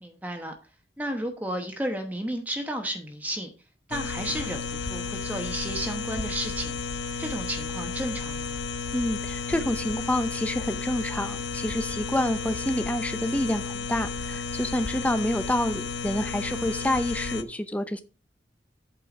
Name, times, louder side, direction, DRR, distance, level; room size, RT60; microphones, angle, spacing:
voice 1, 0.0-0.5 1.0-3.5 3.9-6.8 7.2-8.6, right 1 dB, 10° right, 4 dB, 1.0 m, -32 dB
sound 1, 3.9-17.4, left 4 dB, 90° left, 0.8 m, -33 dB
voice 2, 8.9-18.0, left 1 dB, 10° left, 10 dB, 0.7 m, -28 dB
8.4 x 4.5 x 6.0 m, 0.35 s
head